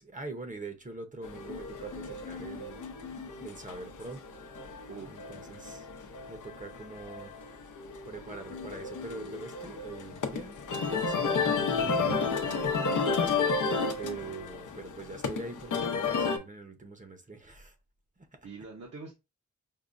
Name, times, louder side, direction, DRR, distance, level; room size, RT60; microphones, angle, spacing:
voice 1, 0.0-2.8 3.4-4.2 5.1-5.9 6.3-7.3 8.0-12.6 12.9-13.2 14.0-17.7 18.2-18.4, right 3 dB, 25° right, 0.7 m, -43 dB
sound 1, 1.2-16.4, left 4 dB, 90° left, 0.7 m, -32 dB
voice 2, 4.8-5.3 11.8-12.3 18.4-19.1, right 4 dB, 55° right, 0.9 m, -42 dB
5.4 x 2.1 x 2.4 m
wide cardioid pair, 85°, 29 cm